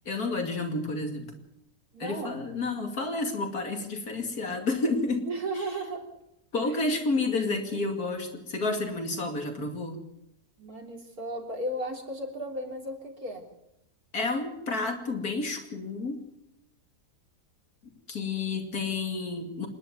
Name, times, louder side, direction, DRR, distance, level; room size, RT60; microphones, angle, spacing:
voice 1, 0.1-1.3 2.0-5.3 5.6-5.7 6.5-10.0 14.1-16.2 18.1-19.7, left 3 dB, 85° left, 4 dB, 3.0 m, -30 dB
voice 2, 1.9-2.4 5.3-6.0 6.7-6.8 10.6-13.4, right 1 dB, 85° right, 1 dB, 4.1 m, -35 dB
27.0 x 11.0 x 9.2 m, 0.82 s
omnidirectional pair, 1.5 m